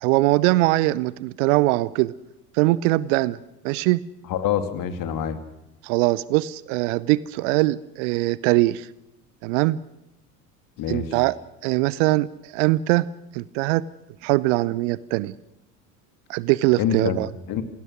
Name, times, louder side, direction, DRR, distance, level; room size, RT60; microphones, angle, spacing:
voice 1, 0.0-2.1 2.5-3.4 3.6-4.0 5.8-8.9 9.4-9.8 10.9-11.4 11.6-13.1 13.3-13.8 14.2-15.3 16.3-17.3, right 19 dB, 50° right, 21 dB, 0.7 m, -21 dB
voice 2, 4.3-5.4 10.8-11.1 16.8-17.2 17.5-17.6, left 8 dB, 40° left, 10 dB, 2.4 m, -25 dB
27.5 x 18.5 x 6.4 m, 0.88 s
figure-of-eight pair, 65°, 48 cm